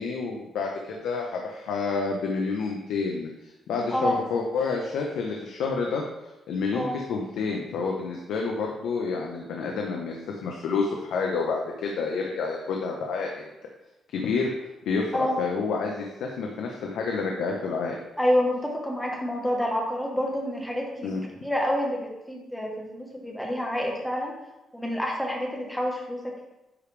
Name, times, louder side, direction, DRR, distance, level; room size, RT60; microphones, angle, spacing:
voice 1, 0.0-6.0 6.5-13.4 14.1-14.5 14.8-18.0 21.0-21.2, left 4 dB, 85° left, 0 dB, 0.9 m, -29 dB
voice 2, 18.2-24.3 24.7-26.5, equal, 5° left, -1 dB, 1.3 m, -28 dB
9.8 x 5.1 x 3.4 m, 0.97 s
cardioid pair, 170°, 0 cm